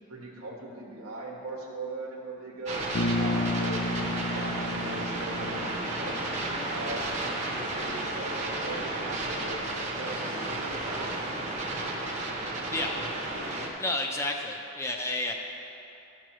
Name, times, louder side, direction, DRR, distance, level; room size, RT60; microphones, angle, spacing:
voice 1, 0.0-2.8 3.1-4.0 4.3-6.3 6.7-11.2, right 2 dB, 90° right, -2 dB, 1.4 m, -40 dB
sound 1, 2.7-13.7, right 2 dB, 30° right, 0.8 m, -32 dB
Bass guitar, 3.0-7.0, left 2 dB, 70° left, 0.5 m, -32 dB
voice 2, 13.8-15.3, left 2 dB, 15° left, 2 dB, 0.5 m, -30 dB
13.0 x 6.5 x 3.1 m, 2.9 s
head